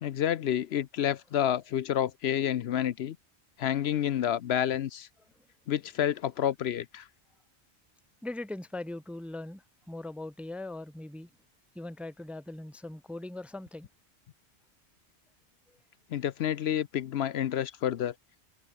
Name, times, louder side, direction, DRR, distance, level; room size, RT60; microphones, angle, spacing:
voice 1, 0.0-3.2 3.6-5.1 5.7-7.1 16.1-18.1, left 10 dB, 70° left, 0.9 m, -29 dB
voice 2, 8.2-11.3 11.7-13.9 15.7-15.8, left 2 dB, ahead, 0.7 m, -40 dB
omnidirectional pair, 1.1 m